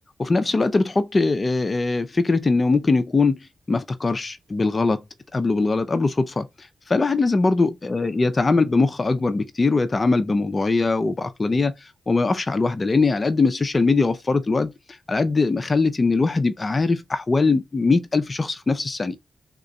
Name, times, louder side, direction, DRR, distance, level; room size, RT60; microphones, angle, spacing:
voice 1, 0.2-5.0 5.3-11.7 12.1-14.7 15.1-19.2, left 3 dB, 40° left, 0.6 m, -21 dB
3.7 x 2.4 x 3.1 m
supercardioid pair, 40°, 0 cm